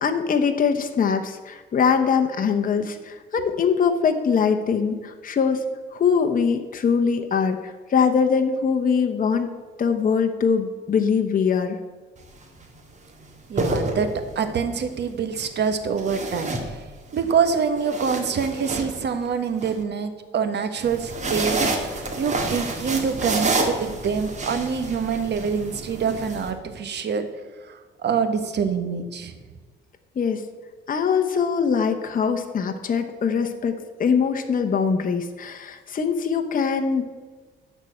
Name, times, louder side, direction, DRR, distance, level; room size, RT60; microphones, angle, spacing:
voice 1, 0.0-5.6 5.9-9.5 9.8-11.8 30.2-30.4 30.9-37.0, left 6 dB, 45° left, 5 dB, 1.0 m, -22 dB
sound 1, 12.2-12.4 13.3-14.5 16.0-17.2 17.6-19.7 20.8-26.5, right 2 dB, 35° right, 2.1 m, -28 dB
voice 2, 13.5-16.9 17.1-27.3 27.6-29.3, right 6 dB, 60° right, 8 dB, 1.3 m, -26 dB
12.5 x 4.5 x 8.5 m, 1.4 s
cardioid pair, 90°, 20 cm